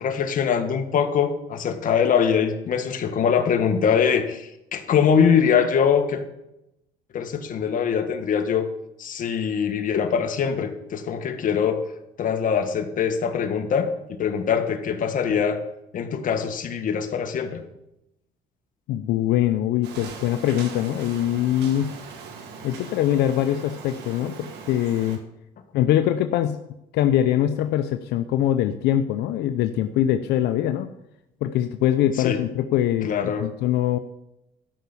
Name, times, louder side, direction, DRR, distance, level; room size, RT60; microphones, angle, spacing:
voice 1, 0.0-6.2 7.1-8.7 9.0-11.8 12.2-15.6 15.9-17.6 32.2-32.4 33.0-33.5, left 7 dB, 50° left, 6 dB, 1.7 m, -23 dB
voice 2, 18.9-21.9 22.6-25.2 25.7-26.6 26.9-30.9 31.4-33.1 33.4-34.0, left 11 dB, 85° left, 8 dB, 0.7 m, -23 dB
sound 1, 19.8-25.2, right 5 dB, 80° right, 2.0 m, -40 dB
12.5 x 5.8 x 8.3 m, 0.86 s
cardioid pair, 110°, 17 cm